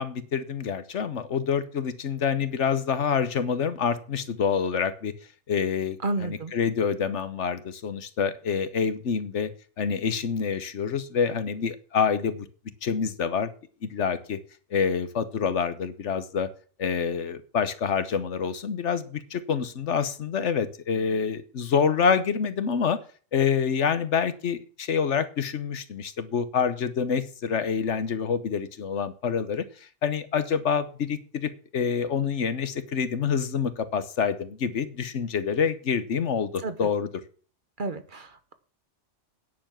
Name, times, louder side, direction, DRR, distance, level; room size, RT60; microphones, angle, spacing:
voice 1, 0.0-5.1 5.5-9.5 9.8-12.5 12.8-13.5 13.8-14.4 14.7-16.5 16.8-23.0 23.3-37.1, left 6 dB, 75° left, 12 dB, 1.3 m, -27 dB
voice 2, 6.0-6.5 36.6-36.7 37.8-38.5, right 2 dB, 45° right, 10 dB, 1.2 m, -31 dB
10.0 x 7.0 x 7.4 m, 0.40 s
omnidirectional pair, 1.2 m